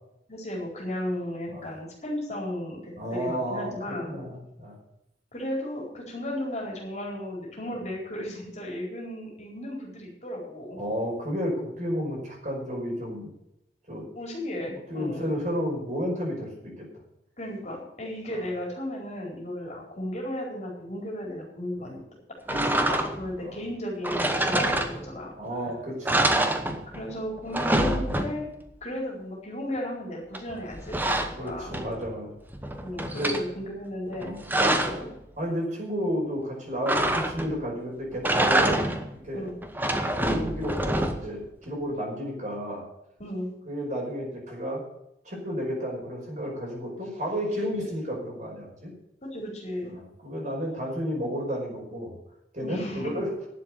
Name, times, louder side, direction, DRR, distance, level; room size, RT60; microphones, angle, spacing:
voice 1, 0.3-4.2 5.3-10.8 14.1-15.3 17.4-22.0 22.4-25.3 26.9-28.5 28.8-31.8 32.8-35.1 39.3-39.6 43.2-43.5 47.7-47.9 49.2-49.9 52.6-53.2, left 1 dB, 35° left, -2 dB, 4.4 m, -35 dB
voice 2, 3.0-4.8 10.8-13.3 13.9-14.1 14.9-16.9 21.8-21.9 23.4-23.6 25.4-26.2 26.6-26.8 31.4-32.4 33.1-33.3 34.2-34.5 35.4-38.8 39.2-39.5 40.2-42.8 43.7-44.8 45.2-48.9 50.2-52.1 52.5-53.3, equal, 40° right, -2 dB, 5.4 m, -32 dB
sound 1, 22.5-23.4 24.0-25.3 25.7-25.8 26.0-27.1 27.4-28.6 30.3-32.1 32.5-33.4 34.1-35.1 36.9-37.7 38.1-39.1 39.6-41.4, right 1 dB, 10° right, 1.0 m, -26 dB
11.5 x 7.8 x 8.5 m, 0.82 s
head